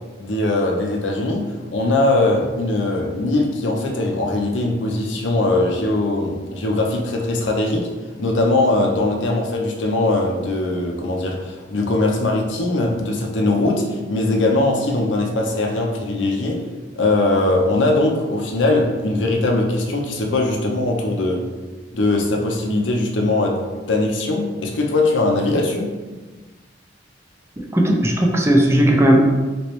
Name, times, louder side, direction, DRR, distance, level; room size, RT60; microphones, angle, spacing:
voice 1, 0.2-1.4 1.7-7.9 8.2-16.6 17.0-21.4 21.9-25.9, left 2 dB, 80° left, 1 dB, 0.6 m, -20 dB
voice 2, 27.6-29.2, right 1 dB, 15° right, 0 dB, 0.4 m, -16 dB
3.1 x 3.0 x 3.0 m, 1.3 s
head